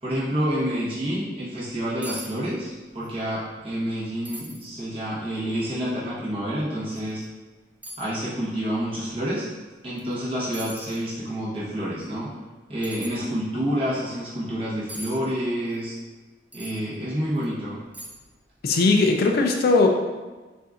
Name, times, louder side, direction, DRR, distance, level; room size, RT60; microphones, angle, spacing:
voice 1, 0.0-7.2 8.0-9.5 9.8-12.3 12.7-15.9 16.5-17.8, equal, 30° right, -9 dB, 1.2 m, -28 dB
sound 1, 2.0-2.3 2.6-3.1 3.5-3.6 4.2-4.7 5.3-5.4 6.9-7.0 7.8-8.1 10.0-10.1 10.5-11.0 12.8-13.1 14.9-15.1 16.5-16.8 17.4-17.5 17.9-18.3 18.6-18.8, right 1 dB, 10° right, 0.5 m, -39 dB
voice 2, 18.6-19.9, left 3 dB, 55° left, 3 dB, 0.4 m, -19 dB
6.7 x 2.6 x 2.4 m, 1.3 s
head